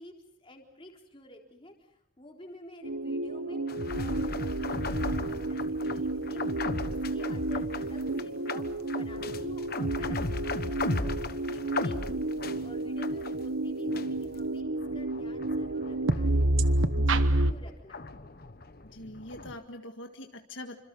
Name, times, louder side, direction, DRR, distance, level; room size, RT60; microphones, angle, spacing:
voice 1, 0.0-3.6 3.9-6.5 6.9-12.2 12.6-16.5 17.1-18.2, left 1 dB, 25° left, 1 dB, 3.9 m, -50 dB
sound 1, 2.8-17.5, right 2 dB, 90° right, 1.1 m, -30 dB
sound 2, 3.7-13.6 13.9-19.6, left 2 dB, 50° left, 1.2 m, -37 dB
voice 2, 16.9-17.3 18.9-20.8, left 1 dB, 70° left, 4 dB, 1.8 m, -43 dB
27.5 x 26.0 x 5.5 m, 0.76 s
head